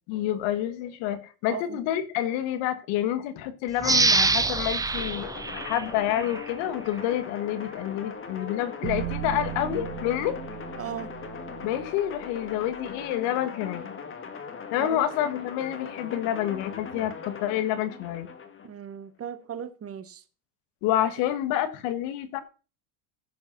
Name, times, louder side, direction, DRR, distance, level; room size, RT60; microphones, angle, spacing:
voice 1, 0.1-5.3 5.6-10.4 11.6-13.9 14.7-18.3 20.8-22.4, left 11 dB, 70° left, 2.1 m, -28 dB
sound 1, 3.8-6.5 7.0-7.1, right 3 dB, 10° right, 0.6 m, -25 dB
sound 2, 4.9-18.7, left 6 dB, 25° left, 1.9 m, -40 dB
sound 3, 8.8-13.0, right 16 dB, 80° right, 1.0 m, -37 dB
voice 2, 10.8-11.1 14.9-15.1 18.6-20.2, right 8 dB, 30° right, 1.6 m, -37 dB
15.5 x 5.5 x 6.2 m
supercardioid pair, 125°, 47 cm